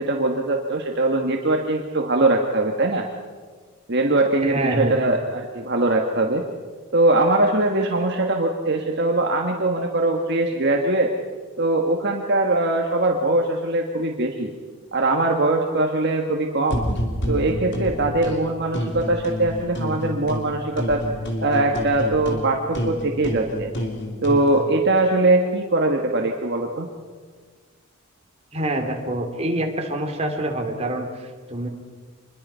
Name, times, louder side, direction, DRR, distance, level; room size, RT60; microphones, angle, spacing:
voice 1, 0.0-3.1 3.9-6.4 6.9-11.1 11.6-14.5 14.9-16.8 17.3-21.0 21.4-23.7 24.2-26.9, right 2 dB, 50° right, 2 dB, 1.7 m, -21 dB
voice 2, 4.4-5.0 28.5-31.7, right 1 dB, 30° right, 2 dB, 2.8 m, -26 dB
sound 1, 16.7-18.4 18.7-20.5 20.8-24.5, equal, 50° left, 3.2 m, -28 dB
26.0 x 21.5 x 5.7 m, 1.5 s
head